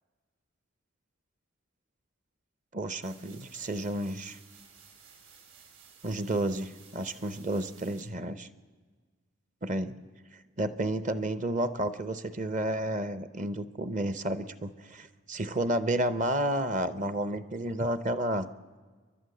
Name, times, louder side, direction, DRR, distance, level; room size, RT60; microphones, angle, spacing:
voice 1, 2.7-4.4 6.0-8.5 9.6-10.0 10.6-18.5, right 1 dB, 35° right, 13 dB, 0.7 m, -31 dB
sound 1, 3.0-8.0, right 6 dB, 60° right, 3.9 m, -55 dB
29.0 x 11.5 x 7.8 m, 1.5 s
head